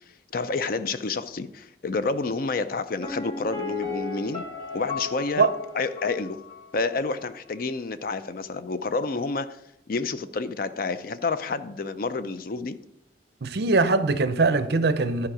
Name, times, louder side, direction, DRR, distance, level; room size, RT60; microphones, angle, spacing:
voice 1, 0.3-4.5 4.7-5.5 5.7-6.4 6.7-9.6 9.9-12.8, left 3 dB, 55° left, 0.5 m, -29 dB
Piano, 3.0-6.8 7.0-7.1, left 4 dB, 25° left, 1.7 m, -35 dB
voice 2, 13.4-15.3, right 3 dB, 65° right, 0.6 m, -22 dB
11.5 x 4.9 x 4.9 m
head